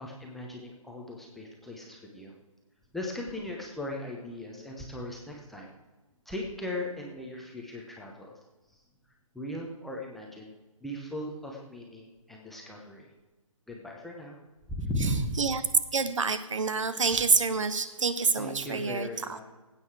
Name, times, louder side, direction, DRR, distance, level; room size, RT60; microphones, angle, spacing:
voice 1, 0.0-2.3 2.9-5.7 6.3-8.4 9.3-10.5 10.8-13.1 13.7-14.4 14.7-15.4 18.4-19.4, left 1 dB, ahead, -2 dB, 0.9 m, -37 dB
voice 2, 15.9-19.4, right 5 dB, 60° right, 12 dB, 1.2 m, -27 dB
18.5 x 8.7 x 4.8 m, 1.2 s
hypercardioid pair, 160°, 18 cm